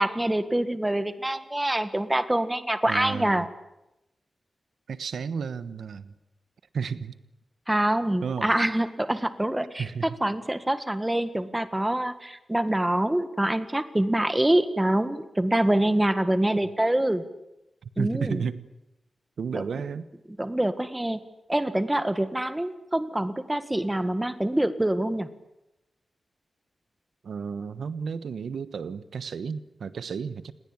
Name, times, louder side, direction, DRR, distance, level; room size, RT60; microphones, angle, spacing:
voice 1, 0.0-3.5 7.7-17.2 18.0-18.4 19.5-19.6 20.4-21.2 21.5-25.3, right 1 dB, 10° right, 11 dB, 1.7 m, -25 dB
voice 2, 2.9-3.5 4.9-6.1 6.7-7.2 8.2-8.5 9.8-10.2 17.8-18.6 19.4-20.0 27.2-30.5, right 6 dB, 85° right, 13 dB, 1.2 m, -32 dB
28.5 x 20.5 x 8.7 m, 0.90 s
wide cardioid pair, 115°, 0 cm